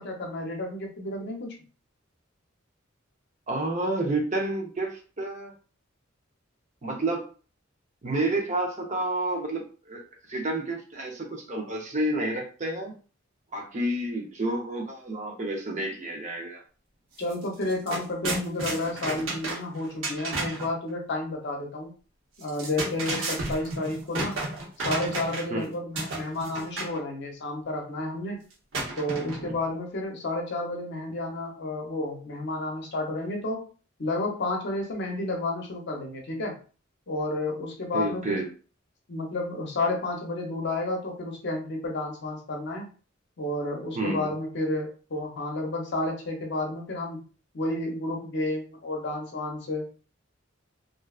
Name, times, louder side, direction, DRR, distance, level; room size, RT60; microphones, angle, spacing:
voice 1, 0.0-1.6 17.2-21.9 22.4-24.4 24.8-28.4 29.0-33.6 34.0-36.6 37.1-38.4 39.1-42.9 43.4-47.2 47.5-49.8, left 2 dB, 60° left, 1 dB, 0.7 m, -31 dB
voice 2, 3.5-5.5 6.8-7.2 8.0-10.0 10.3-13.0 13.5-16.6 25.5-25.7 37.9-38.5 44.0-44.3, right 2 dB, 40° right, 1 dB, 0.6 m, -30 dB
sound 1, 17.2-17.3 17.6-20.7 22.4-25.6 26.0-27.0 28.7-29.6, right 2 dB, 85° right, 0.9 m, -32 dB
2.5 x 2.2 x 2.3 m, 0.38 s
head